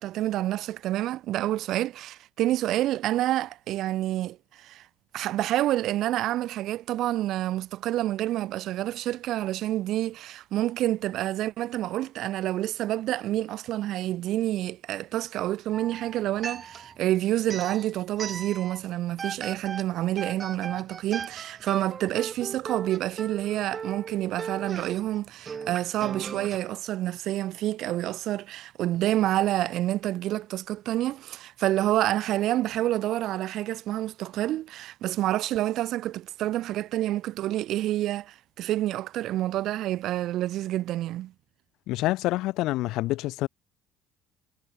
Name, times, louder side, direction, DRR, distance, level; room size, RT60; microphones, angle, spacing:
voice 1, 0.0-4.9 5.1-41.3, right 14 dB, 65° right, 1.4 m, -28 dB
sound 1, 15.7-17.0 17.4-18.8 19.2-26.6, right 6 dB, 35° right, 5.2 m, -38 dB
voice 2, 41.9-43.5, left 18 dB, 75° left, 3.0 m, -27 dB
supercardioid pair, 85°, 0 cm